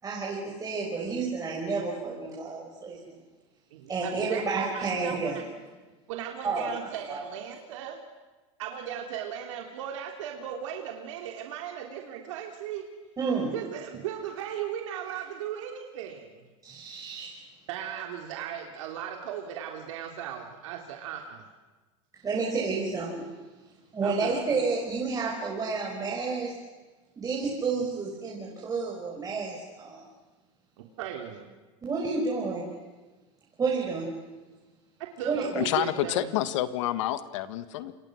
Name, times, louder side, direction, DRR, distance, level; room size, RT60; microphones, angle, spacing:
voice 1, 0.0-3.2 3.9-5.4 6.4-6.7 7.1-7.2 13.2-13.5 16.6-17.3 22.2-23.3 23.9-26.5 27.2-30.0 31.8-32.7 33.6-34.1 35.3-35.6, right 4 dB, 20° right, -4 dB, 5.8 m, -30 dB
voice 2, 3.7-5.4 6.1-8.0 8.6-12.8 13.5-16.4 17.7-21.4 24.0-24.3 30.8-31.5 35.2-36.3, right 9 dB, 80° right, 2 dB, 3.3 m, -37 dB
voice 3, 35.6-37.9, left 13 dB, 75° left, 12 dB, 1.6 m, -28 dB
28.5 x 25.5 x 6.4 m, 1.3 s
supercardioid pair, 120°, 16 cm